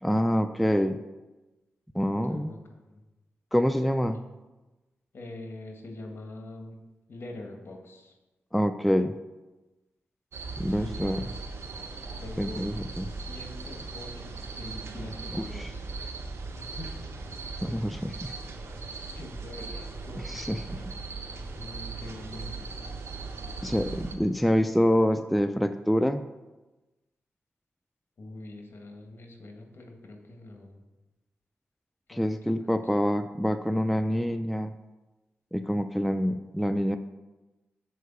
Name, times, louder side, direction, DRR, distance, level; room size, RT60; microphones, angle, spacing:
voice 1, 0.0-1.0 1.9-2.5 3.5-4.2 8.5-9.1 10.6-11.2 12.4-13.1 15.3-15.7 17.6-18.3 20.2-20.6 23.6-26.2 32.1-34.7 35.5-37.0, equal, ahead, 9 dB, 0.3 m, -26 dB
voice 2, 2.1-2.6 2.9-3.0 4.0-4.2 5.1-6.8 7.1-8.1 10.7-11.3 12.2-12.7 13.0-16.0 16.6-17.1 19.1-20.9 21.6-22.7 28.2-30.8 32.1-32.7, left 2 dB, 55° left, 3 dB, 1.5 m, -44 dB
sound 1, 10.3-24.2, right 3 dB, 80° right, 0.9 m, -38 dB
6.5 x 4.6 x 6.7 m, 1.1 s
cardioid pair, 65°, 5 cm